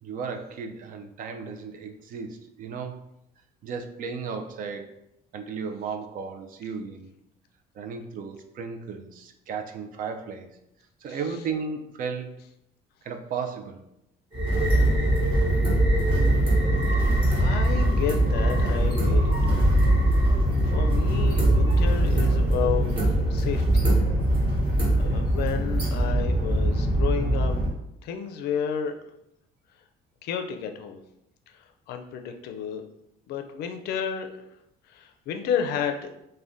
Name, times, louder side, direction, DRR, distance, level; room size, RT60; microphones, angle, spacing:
voice 1, 0.0-3.0 3.6-4.9 5.3-7.1 7.7-10.5 11.0-12.3 13.0-13.8 21.7-21.8, right 5 dB, 55° right, 6 dB, 0.4 m, -35 dB
sound 1, 14.3-27.7, right 1 dB, 30° right, 1.1 m, -22 dB
voice 2, 17.4-19.6 20.6-23.0 23.2-23.9 25.0-27.5 28.0-28.9 30.2-31.0 31.5-32.8 33.3-34.3 34.9-36.1, left 7 dB, 70° left, 6 dB, 0.4 m, -31 dB
2.5 x 2.1 x 3.4 m, 0.81 s
cardioid pair, 110°, 17 cm